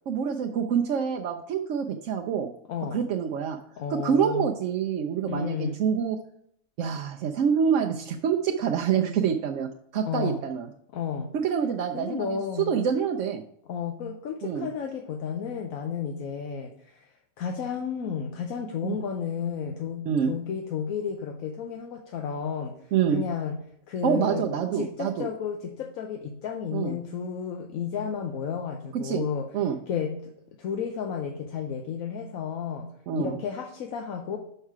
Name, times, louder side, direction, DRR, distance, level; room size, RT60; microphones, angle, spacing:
voice 1, 0.1-2.5 2.9-3.6 3.9-6.2 6.8-10.7 11.4-13.4 14.4-14.7 18.8-19.0 20.1-20.3 22.9-23.2 24.0-25.3 26.7-26.9 29.0-29.2 29.5-29.8 33.1-33.4, right 7 dB, 70° right, 2 dB, 0.9 m, -26 dB
voice 2, 2.7-3.1 3.8-4.5 5.3-5.8 9.9-10.4 10.9-11.3 11.9-12.8 13.6-17.1 17.4-22.8 23.1-24.5 24.7-30.3 30.6-32.9 33.1-34.4, left 7 dB, 80° left, 3 dB, 1.1 m, -32 dB
5.8 x 5.5 x 4.7 m, 0.69 s
omnidirectional pair, 1.4 m